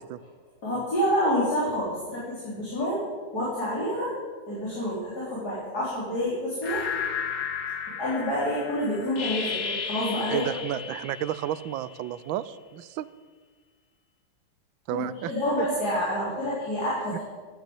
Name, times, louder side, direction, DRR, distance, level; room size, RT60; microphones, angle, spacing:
voice 1, 0.6-3.1 3.3-4.1 4.5-6.8 8.0-10.5 14.9-17.2, equal, 45° left, -8 dB, 4.2 m, -28 dB
sound 1, 6.6-12.1, left 7 dB, 80° left, 2.3 m, -34 dB
voice 2, 10.3-13.1 14.9-15.3 15.6-15.7 17.1-17.2, right 12 dB, 75° right, 16 dB, 1.3 m, -31 dB
13.0 x 9.5 x 7.8 m, 1.5 s
omnidirectional pair, 2.3 m